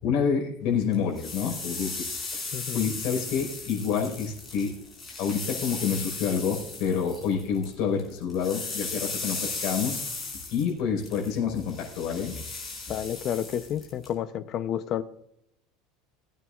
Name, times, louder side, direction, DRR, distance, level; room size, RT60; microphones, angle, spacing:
voice 1, 0.0-2.4 2.7-4.7 5.2-10.0 10.5-12.4, left 6 dB, 55° left, 0 dB, 4.7 m, -28 dB
sound 1, 0.9-7.7 8.0-14.1, left 3 dB, 15° left, 4.0 m, -36 dB
voice 2, 2.5-2.9 12.9-15.0, left 10 dB, 40° left, 12 dB, 0.8 m, -30 dB
20.5 x 9.2 x 2.5 m, 0.75 s
supercardioid pair, 155°, 0 cm